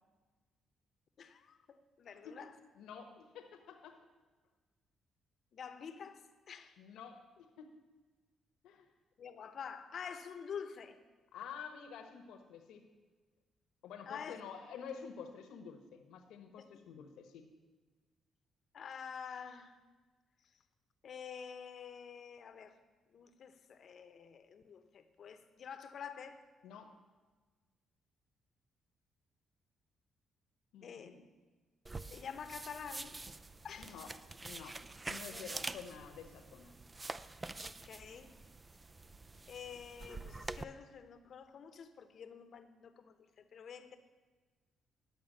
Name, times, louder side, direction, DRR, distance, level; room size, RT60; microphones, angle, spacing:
voice 1, 1.2-2.5 5.5-6.2 6.5-6.8 9.2-11.0 14.1-14.4 16.8-16.9 18.7-19.8 21.0-22.7 23.1-26.4 30.8-31.2 32.1-33.2 33.6-34.0 35.3-35.4 37.6-38.3 39.5-44.0, left 7 dB, 55° left, 10 dB, 0.8 m, -48 dB
voice 2, 2.7-4.0 6.8-7.7 8.6-8.9 11.3-12.8 13.8-17.5 26.6-26.9 30.7-31.2 33.8-34.1 34.4-34.8 35.1-36.7, left 7 dB, 85° left, 5 dB, 1.0 m, -49 dB
sound 1, 31.9-40.6, right 3 dB, 20° right, 0.4 m, -46 dB
10.5 x 6.7 x 6.5 m, 1.4 s
cardioid pair, 90°, 0 cm